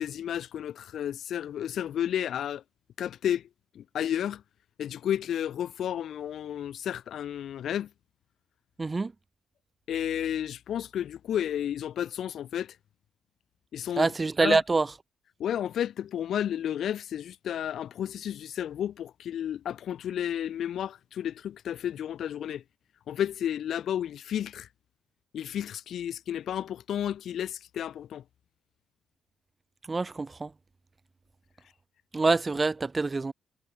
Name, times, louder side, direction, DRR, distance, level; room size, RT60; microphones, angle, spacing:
voice 1, 0.0-2.6 3.0-3.5 3.7-4.4 4.8-7.9 9.9-12.7 13.7-14.1 14.4-14.6 15.4-22.6 23.1-24.7 25.3-28.2, left 10 dB, 65° left, 4.9 m, -32 dB
voice 2, 8.8-9.1 14.0-14.9 29.9-30.5 32.1-33.3, right 3 dB, 25° right, 5.8 m, -25 dB
cardioid pair, 90°, 0 cm